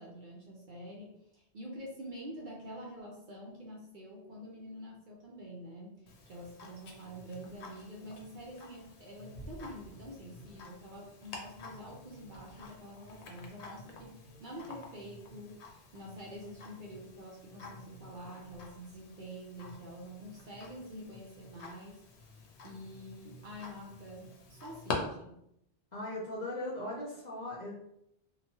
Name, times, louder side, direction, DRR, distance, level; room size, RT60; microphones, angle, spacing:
voice 1, 0.0-22.0 22.6-25.4, equal, 55° right, -2 dB, 0.6 m, -47 dB
Tick-tock, 6.1-24.9, left 4 dB, 75° left, 0.9 m, -48 dB
voice 2, 25.9-27.7, left 1 dB, 50° left, -5 dB, 0.5 m, -38 dB
2.9 x 2.1 x 2.7 m, 0.78 s
omnidirectional pair, 1.2 m